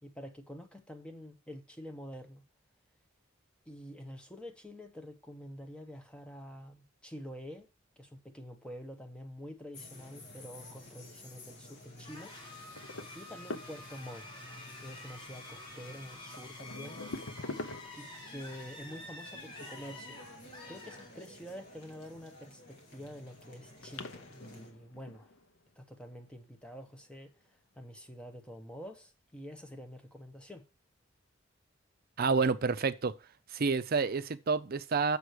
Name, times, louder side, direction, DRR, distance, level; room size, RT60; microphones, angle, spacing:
voice 1, 0.0-2.4 3.7-7.7 8.0-12.3 13.1-14.4 14.8-17.0 18.0-20.2 20.7-25.3 25.8-27.3 27.8-30.6, equal, 5° left, 1.0 m, -47 dB
sound 1, 9.7-24.7, left 1 dB, 55° left, 2.0 m, -53 dB
sound 2, 12.0-21.6, left 2 dB, 25° left, 2.9 m, -49 dB
sound 3, 12.8-14.2 15.6-15.8 16.3-18.2 22.1-22.7 23.3-23.4 23.8-25.8 26.8-27.1 27.9-28.0 28.5-28.6, left 2 dB, 85° left, 0.8 m, -44 dB
voice 2, 32.2-33.1 33.5-35.2, right 4 dB, 50° right, 0.5 m, -29 dB
6.9 x 4.9 x 6.4 m
head